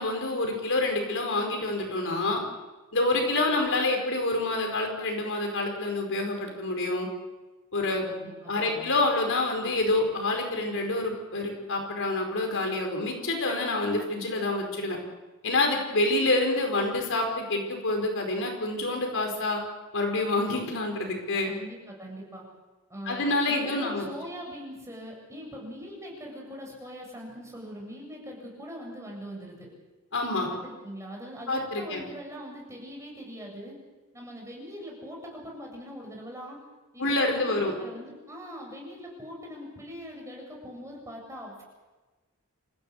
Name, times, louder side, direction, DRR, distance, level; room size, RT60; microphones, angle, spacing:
voice 1, 0.0-2.4 2.9-7.1 7.7-8.1 8.5-15.0 15.4-19.6 19.9-21.5 23.1-24.1 30.1-30.5 31.5-32.0 37.0-37.7, left 2 dB, 60° left, 3 dB, 5.2 m, -27 dB
voice 2, 8.0-8.8 21.4-22.4 22.9-29.7 30.5-33.8 34.1-36.6 36.9-41.6, equal, 15° right, -1 dB, 7.9 m, -42 dB
28.0 x 16.0 x 8.3 m, 1.2 s
head